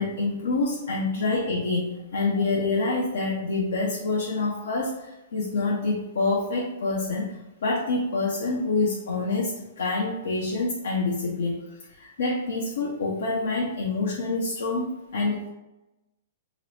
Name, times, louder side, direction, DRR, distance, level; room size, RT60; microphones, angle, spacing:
voice 1, 0.0-11.6 11.9-15.5, left 3 dB, 80° left, -2 dB, 0.5 m, -27 dB
3.0 x 2.0 x 4.0 m, 0.97 s
hypercardioid pair, 140°, 0 cm